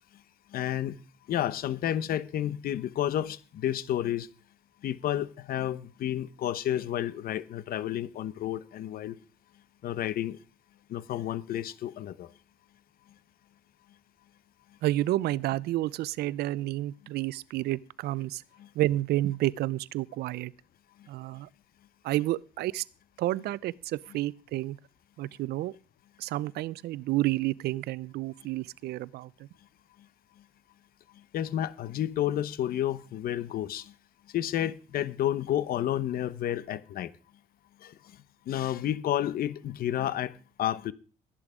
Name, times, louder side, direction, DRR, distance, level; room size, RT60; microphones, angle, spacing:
voice 1, 0.5-1.0 1.3-4.3 4.8-9.1 9.8-10.4 10.9-12.3 18.6-18.7 31.3-33.9 34.3-37.1 37.8-37.9 38.5-40.9, left 11 dB, 60° left, 1.0 m, -31 dB
voice 2, 14.8-18.4 18.8-20.5 21.1-21.5 22.0-22.8 23.2-24.8 25.2-25.7 26.2-29.5, right 16 dB, 75° right, 0.6 m, -30 dB
13.5 x 11.0 x 5.0 m
cardioid pair, 110°, 17 cm